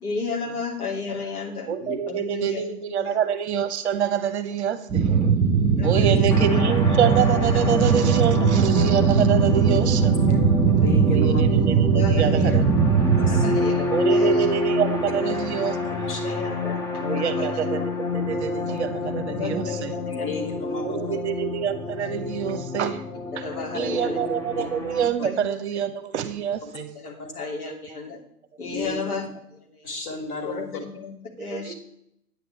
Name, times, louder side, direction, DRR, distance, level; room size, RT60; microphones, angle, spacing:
voice 1, 0.0-1.7 2.1-2.7 3.0-3.2 5.8-6.3 10.3-10.4 11.9-12.6 13.2-14.3 15.8-16.0 16.2-17.5 19.3-20.3 23.3-24.2 25.2-25.4 26.9-28.2 28.6-29.3 29.8-29.9 30.4-31.7, left 4 dB, 70° left, 1 dB, 2.9 m, -33 dB
voice 2, 1.7-5.4 5.8-10.3 11.0-12.6 13.9-16.1 17.0-19.9 20.8-23.0 23.4-23.5 23.7-26.9 31.5-31.7, right 8 dB, 45° right, 9 dB, 1.0 m, -26 dB
sound 1, 4.9-13.5, right 6 dB, 20° right, 1.7 m, -20 dB
sound 2, 6.3-25.1, left 1 dB, 5° left, 0.8 m, -28 dB
voice 3, 10.7-11.4 13.2-13.5 16.1-16.2 20.1-21.1 27.2-27.3 28.6-29.0 29.8-30.6, left 3 dB, 25° left, 3 dB, 2.6 m, -33 dB
9.3 x 9.3 x 4.4 m, 0.73 s
figure-of-eight pair, 115°, 46 cm